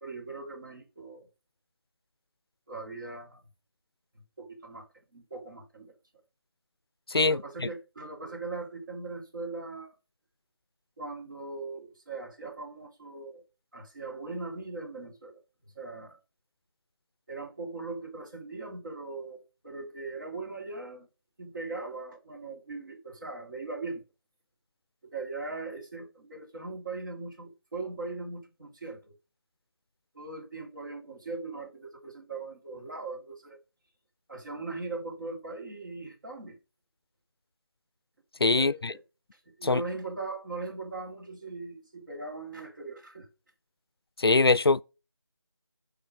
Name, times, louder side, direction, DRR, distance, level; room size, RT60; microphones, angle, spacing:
voice 1, 0.0-1.3 2.7-3.4 4.1-4.9 5.1-5.9 7.3-9.9 11.0-13.4 13.7-15.4 15.7-16.2 17.3-21.1 21.4-24.0 25.0-29.1 30.1-33.6 34.3-36.6 38.5-39.0 39.3-43.3, right 3 dB, 50° right, 2.6 m, -40 dB
voice 2, 7.1-7.7 38.4-38.9 39.6-39.8 44.2-44.8, left 3 dB, 65° left, 0.4 m, -23 dB
9.6 x 3.7 x 4.8 m
figure-of-eight pair, 165°, 14 cm